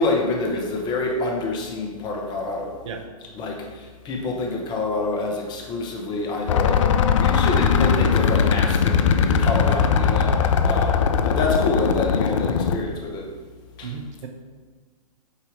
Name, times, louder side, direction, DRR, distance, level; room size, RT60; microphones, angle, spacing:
voice 1, 0.0-2.7 3.3-6.8 7.1-13.3 13.8-13.9, left 3 dB, 20° left, 1 dB, 1.0 m, -27 dB
sound 1, 6.5-12.8, left 6 dB, 55° left, 0.5 m, -20 dB
voice 2, 13.8-14.3, right 6 dB, 50° right, 5 dB, 0.9 m, -34 dB
8.3 x 2.8 x 5.1 m, 1.5 s
figure-of-eight pair, 120°, 20 cm